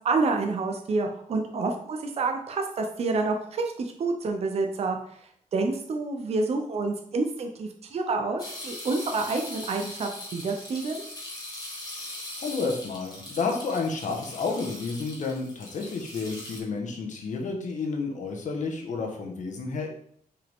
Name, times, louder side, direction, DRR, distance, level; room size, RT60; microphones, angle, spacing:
voice 1, 0.0-5.0 5.5-11.0, right 3 dB, 45° right, 4 dB, 0.7 m, -28 dB
sound 1, 8.4-16.6, left 1 dB, 25° left, 1.8 m, -40 dB
voice 2, 12.4-19.9, left 4 dB, 55° left, 2 dB, 1.3 m, -31 dB
6.2 x 4.9 x 3.6 m, 0.64 s
wide cardioid pair, 165°, 15 cm